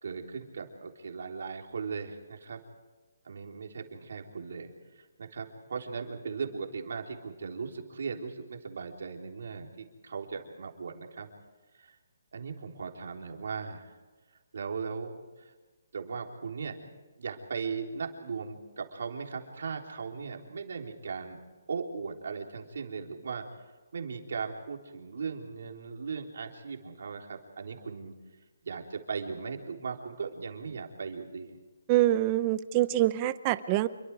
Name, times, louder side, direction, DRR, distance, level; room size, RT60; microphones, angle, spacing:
voice 1, 0.0-2.6 3.3-4.7 5.0-11.3 11.8-11.9 12.3-13.9 14.5-15.5 15.9-16.8 17.2-21.4 21.7-23.4 23.9-28.1 28.6-31.6, right 5 dB, 60° right, 2 dB, 3.7 m, -38 dB
voice 2, 31.9-33.9, right 15 dB, 20° right, 14 dB, 0.7 m, -25 dB
28.0 x 23.5 x 4.9 m, 1.2 s
hypercardioid pair, 170°, 0 cm